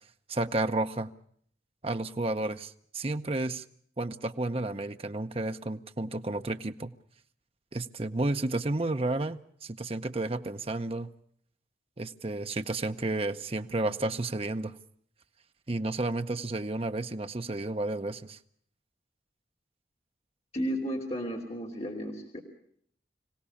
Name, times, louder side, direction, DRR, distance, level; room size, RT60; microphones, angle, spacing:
voice 1, 0.3-1.1 1.8-3.6 4.0-6.9 7.7-11.1 12.0-14.8 15.7-18.4, right 2 dB, 35° right, 8 dB, 0.8 m, -31 dB
voice 2, 20.5-22.4, equal, 35° left, 1 dB, 3.0 m, -33 dB
25.5 x 17.0 x 7.1 m, 0.65 s
head